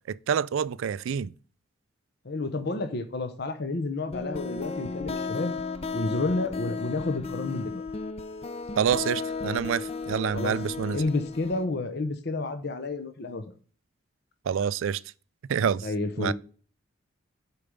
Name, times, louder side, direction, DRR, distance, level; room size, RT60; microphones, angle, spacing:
voice 1, 0.1-1.3 8.8-11.0 14.5-15.0 15.5-15.9 16.2-16.3, right 7 dB, 75° right, 0.3 m, -27 dB
voice 2, 2.2-5.5 5.9-7.8 10.3-10.6 10.9-13.4 15.8-16.3, left 2 dB, 55° left, 0.8 m, -30 dB
sound 1, 4.1-11.7, left 4 dB, 30° left, 0.5 m, -34 dB
6.8 x 4.7 x 5.3 m
head